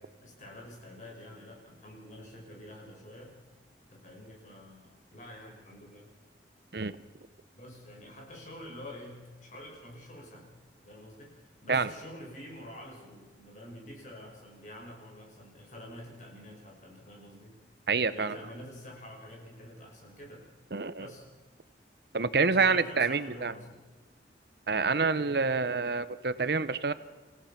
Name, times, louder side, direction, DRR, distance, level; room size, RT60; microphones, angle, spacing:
voice 1, 0.2-3.4 3.9-6.1 7.5-10.5 10.8-17.6 18.1-20.4 21.0-21.2 22.4-23.8, left 1 dB, 45° left, 0 dB, 6.0 m, -47 dB
voice 2, 17.9-18.4 20.7-21.1 22.1-23.5 24.7-26.9, right 4 dB, 60° right, 15 dB, 0.7 m, -27 dB
28.5 x 17.0 x 5.9 m, 1.4 s
head